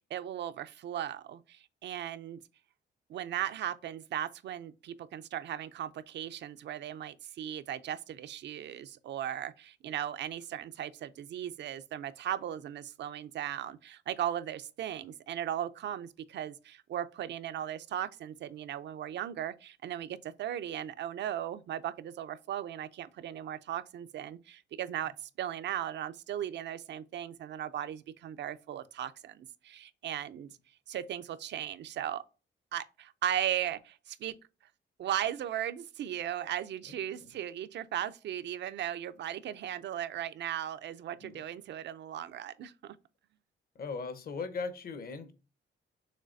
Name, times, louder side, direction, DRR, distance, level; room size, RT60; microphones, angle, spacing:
voice 1, 0.1-2.4 3.1-30.5 30.9-32.2 32.7-34.3 35.0-43.0, right 11 dB, 70° right, 0.5 m, -37 dB
voice 2, 43.7-45.3, left 4 dB, 50° left, 0.9 m, -38 dB
6.5 x 3.1 x 2.6 m
cardioid pair, 115°, 19 cm